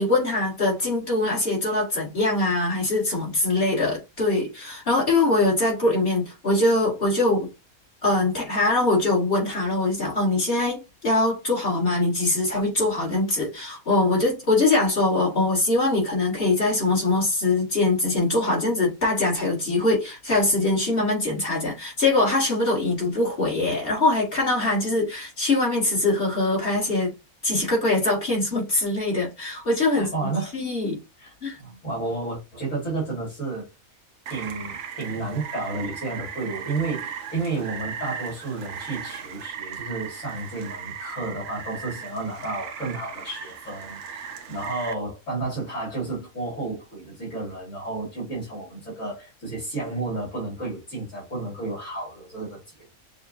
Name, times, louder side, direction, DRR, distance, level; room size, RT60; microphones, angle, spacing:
voice 1, 0.0-7.5 8.0-27.1 27.4-30.1 30.5-31.0 31.4-31.6, left 2 dB, 40° left, 2.1 m, -23 dB
voice 2, 29.9-30.6 31.2-31.3 31.6-33.7 34.3-52.6, right 3 dB, 60° left, 2.4 m, -31 dB
Rain, 34.3-44.9, right 7 dB, 60° right, 0.8 m, -37 dB
6.8 x 2.5 x 2.6 m
omnidirectional pair, 1.5 m